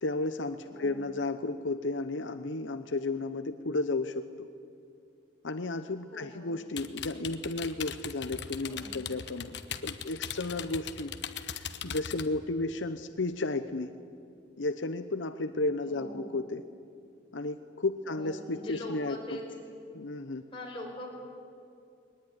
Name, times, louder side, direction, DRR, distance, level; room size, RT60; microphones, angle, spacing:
voice 1, 0.0-4.5 5.4-9.6 9.8-13.9 14.6-16.6 17.3-19.4 19.9-20.4, left 2 dB, 80° left, 9 dB, 0.9 m, -33 dB
voice 2, 0.6-1.0 6.1-6.5 8.6-8.9 15.8-16.3 18.0-19.6 20.5-21.1, left 1 dB, 30° left, -1 dB, 5.7 m, -42 dB
sound 1, 6.8-12.3, left 8 dB, 65° left, 1.1 m, -39 dB
21.5 x 19.5 x 9.8 m, 2.5 s
head